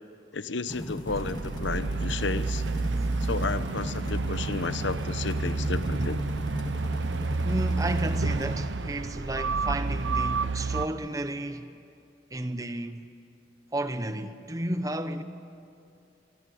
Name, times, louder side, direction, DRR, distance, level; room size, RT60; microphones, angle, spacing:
voice 1, 0.3-2.6 3.2-6.2, left 3 dB, 75° left, 1.0 m, -32 dB
sound 1, 0.7-8.2, left 1 dB, 20° left, 2.3 m, -38 dB
sound 2, 1.1-10.9, right 3 dB, 80° right, 0.7 m, -29 dB
voice 2, 7.4-11.8 12.3-13.1 13.7-15.2, right 1 dB, 20° right, 0.9 m, -32 dB
26.0 x 24.0 x 8.5 m
head